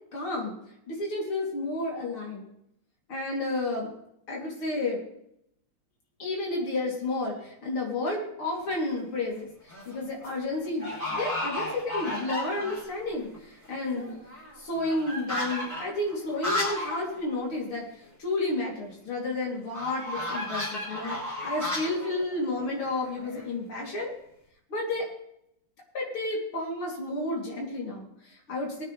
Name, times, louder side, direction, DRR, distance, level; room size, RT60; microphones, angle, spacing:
voice 1, 0.1-0.5 0.9-2.4 3.1-3.9 4.3-5.1 6.2-14.1 14.6-17.9 18.2-24.1 24.7-25.1 25.9-28.8, left 2 dB, 75° left, -2 dB, 4.2 m, -31 dB
sound 1, 8.5-9.0 9.5-10.0 10.2-10.3 10.8-13.0 13.3-13.4 13.6-17.0 17.3-17.4 17.7-17.8 19.7-23.5, left 1 dB, 5° left, 4.2 m, -34 dB
20.5 x 9.0 x 3.4 m, 0.77 s
omnidirectional pair, 2.4 m